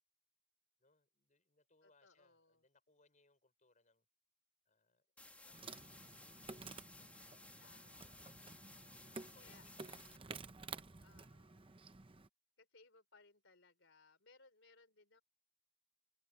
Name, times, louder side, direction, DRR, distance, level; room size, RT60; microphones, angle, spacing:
voice 1, 0.8-4.1 4.7-6.1 6.8-8.2 8.8-10.3, left 3 dB, 35° left, 5.7 m, -74 dB
voice 2, 1.8-2.6 7.6-8.5 9.4-9.7 11.0-11.7 12.6-15.2, left 4 dB, 60° left, 4.3 m, -67 dB
sound 1, 5.2-10.2, left 2 dB, 5° left, 2.3 m, -59 dB
Insect, 5.5-12.3, right 4 dB, 25° right, 0.8 m, -53 dB
open air
head